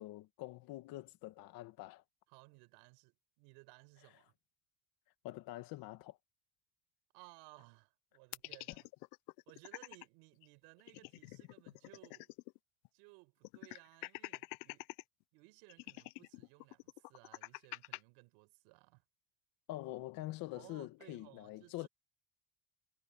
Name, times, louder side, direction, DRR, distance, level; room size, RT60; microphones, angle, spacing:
voice 1, 0.0-2.0 5.2-6.2 19.7-21.9, left 17 dB, 60° left, 1.9 m, -45 dB
voice 2, 2.3-4.3 7.1-8.9 9.5-12.3 12.9-14.9 15.3-19.0 20.5-21.9, right 27 dB, 90° right, 5.0 m, -60 dB
sound 1, 8.3-10.1 10.4-10.5 10.8-12.6 12.8-12.9 13.4-15.0 15.7-18.0, left 25 dB, 85° left, 0.7 m, -47 dB
cardioid pair, 155°, 40 cm